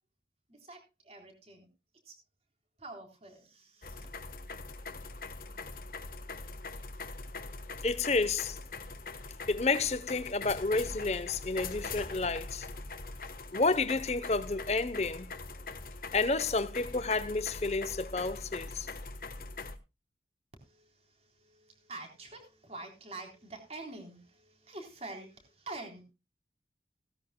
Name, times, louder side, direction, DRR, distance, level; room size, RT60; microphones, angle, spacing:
voice 1, 0.5-1.7 2.0-2.1 2.8-4.1 20.6-26.0, right 2 dB, 35° right, 3.6 m, -47 dB
sound 1, 3.8-19.8, left 3 dB, 50° left, 1.2 m, -42 dB
voice 2, 7.8-8.6 9.5-12.7 13.5-15.3 16.1-18.9, left 3 dB, 35° left, 0.8 m, -30 dB
17.0 x 13.5 x 2.2 m
head